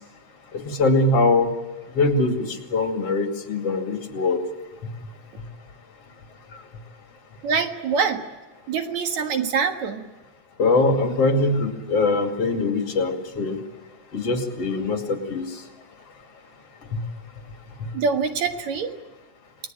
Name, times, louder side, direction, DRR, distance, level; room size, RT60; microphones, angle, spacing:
voice 1, 0.5-1.5 1.9-4.4 10.6-13.6 14.1-15.5 16.9-17.0 17.8-17.9, left 3 dB, 55° left, 4 dB, 3.4 m, -22 dB
voice 2, 7.4-8.3 8.7-10.1 17.9-19.0, right 5 dB, 70° right, 5 dB, 3.0 m, -24 dB
29.0 x 19.5 x 8.9 m, 1.2 s
omnidirectional pair, 3.4 m